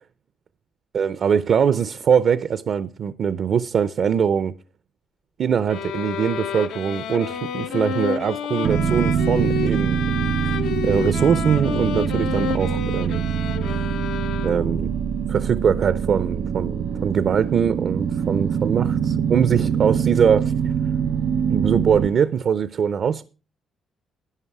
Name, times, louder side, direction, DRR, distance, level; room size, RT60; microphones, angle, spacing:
voice 1, 0.9-4.5 5.4-10.0 10.4-10.6 10.8-13.2 13.8-13.9 14.4-14.9 15.3-20.7 21.4-23.2, right 7 dB, 60° right, 0.6 m, -22 dB
sound 1, 5.7-14.9, left 8 dB, 85° left, 0.8 m, -30 dB
sound 2, 8.6-22.1, right 7 dB, 75° right, 1.2 m, -24 dB
11.5 x 9.5 x 4.7 m
cardioid pair, 90°, 0 cm